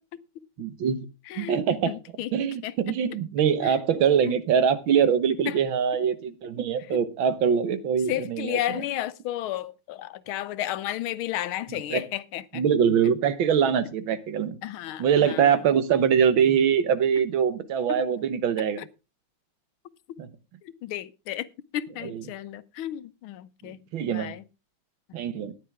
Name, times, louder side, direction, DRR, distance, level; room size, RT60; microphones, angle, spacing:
voice 1, 0.6-1.1 1.4-1.9 2.3-8.8 11.9-12.0 12.5-14.6 15.0-18.8 20.2-20.3 22.0-22.2 23.6-24.4 25.1-25.5, right 7 dB, 75° right, 1.8 m, -23 dB
voice 2, 1.3-1.6 1.9-2.3 2.6-2.7 3.6-3.8 4.2-4.4 5.5-5.6 8.1-12.6 14.6-15.6 17.9-18.0 18.8-18.9 20.6-21.5 21.7-24.4, left 13 dB, 85° left, 1.6 m, -33 dB
14.0 x 10.5 x 3.5 m
omnidirectional pair, 2.2 m